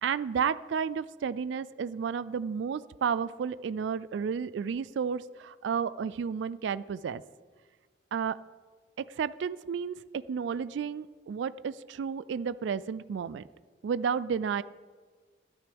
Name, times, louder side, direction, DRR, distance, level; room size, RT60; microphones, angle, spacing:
voice 1, 0.0-7.2 8.1-8.4 9.0-13.4 13.8-14.6, right 6 dB, 75° right, 17 dB, 0.3 m, -32 dB
13.5 x 12.5 x 3.5 m, 1.5 s
head